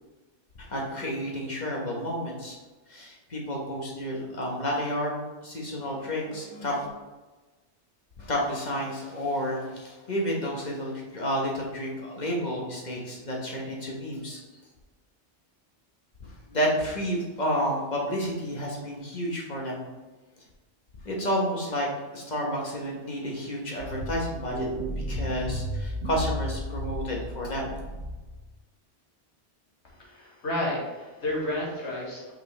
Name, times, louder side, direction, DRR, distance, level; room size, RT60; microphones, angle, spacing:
voice 1, 0.7-2.6 2.9-5.1 5.4-6.9 8.2-14.4 16.2-19.9 21.0-24.7 25.1-27.8, equal, 40° left, -2 dB, 1.5 m, -30 dB
sound 1, 23.8-28.5, equal, 65° right, 2.0 m, -33 dB
voice 2, 29.8-32.3, left 1 dB, 70° left, -3 dB, 1.9 m, -31 dB
5.5 x 5.3 x 3.4 m, 1.2 s
omnidirectional pair, 1.2 m